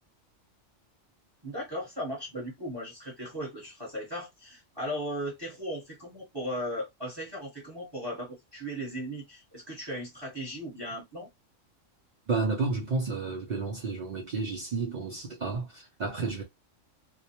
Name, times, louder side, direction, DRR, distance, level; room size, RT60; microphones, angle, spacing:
voice 1, 1.4-11.3, equal, 20° right, 0.9 m, -37 dB
voice 2, 12.3-16.4, right 4 dB, 60° right, 0.4 m, -31 dB
2.2 x 2.0 x 2.8 m
omnidirectional pair, 1.3 m